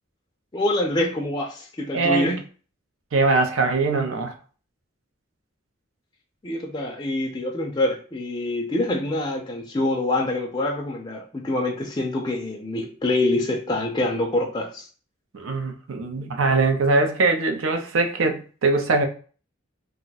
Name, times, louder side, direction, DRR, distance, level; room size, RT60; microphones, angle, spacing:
voice 1, 0.5-2.4 6.4-14.9, left 1 dB, 20° left, 0.4 m, -25 dB
voice 2, 1.9-2.4 3.1-4.3 15.3-19.1, right 3 dB, 85° right, 0.6 m, -22 dB
2.5 x 2.2 x 3.9 m
head